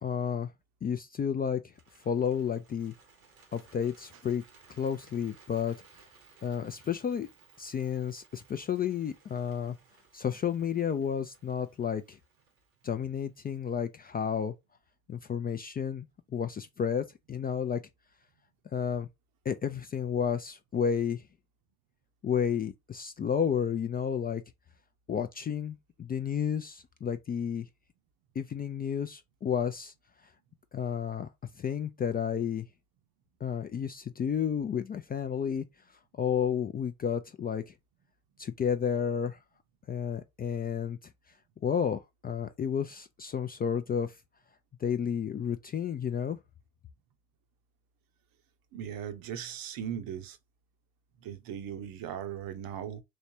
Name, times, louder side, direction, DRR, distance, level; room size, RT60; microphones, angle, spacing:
voice 1, 0.0-0.5 0.8-1.6 2.1-2.9 3.5-4.4 4.7-5.8 6.4-7.3 7.6-9.8 10.1-12.2 12.8-14.5 15.1-16.1 16.3-17.8 18.7-19.1 19.5-21.2 22.2-24.4 25.1-27.7 28.4-29.9 30.7-31.3 31.6-32.7 33.4-35.6 36.2-37.7 38.4-39.4 39.9-41.0 41.6-44.2 44.8-46.4, left 7 dB, 25° left, 0.3 m, -31 dB
Bird, 1.6-13.8, right 4 dB, 85° right, 1.0 m, -61 dB
voice 2, 48.7-50.4 51.2-53.0, right 9 dB, 55° right, 0.7 m, -38 dB
3.2 x 3.2 x 2.7 m
figure-of-eight pair, 40°, 41 cm